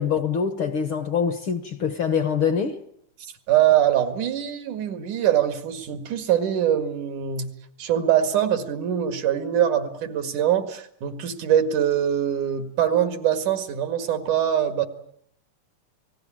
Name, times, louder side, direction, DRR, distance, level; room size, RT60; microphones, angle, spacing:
voice 1, 0.0-2.8, left 6 dB, 55° left, 1.6 m, -24 dB
voice 2, 3.5-7.5 7.8-14.9, right 10 dB, 80° right, 3.4 m, -23 dB
29.0 x 19.5 x 8.9 m
omnidirectional pair, 3.5 m